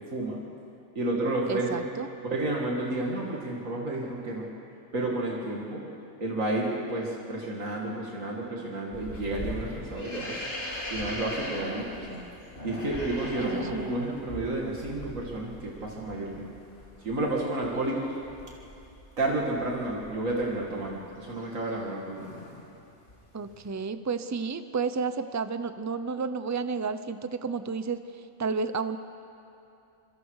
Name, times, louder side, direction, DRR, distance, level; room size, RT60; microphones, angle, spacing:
voice 1, 0.9-1.9 2.2-4.5 4.9-5.8 6.2-10.4 10.9-12.3 12.6-16.5 17.0-18.1 19.2-22.2, right 2 dB, 85° right, -2 dB, 2.7 m, -31 dB
voice 2, 1.5-2.1 13.4-13.9 23.3-28.0 28.4-29.0, right 5 dB, 20° right, 11 dB, 0.4 m, -31 dB
sound 1, 8.9-21.9 22.1-22.7 23.0-23.7, left 1 dB, 60° left, 4.2 m, -40 dB
26.5 x 23.0 x 4.8 m, 2.7 s
omnidirectional pair, 1.3 m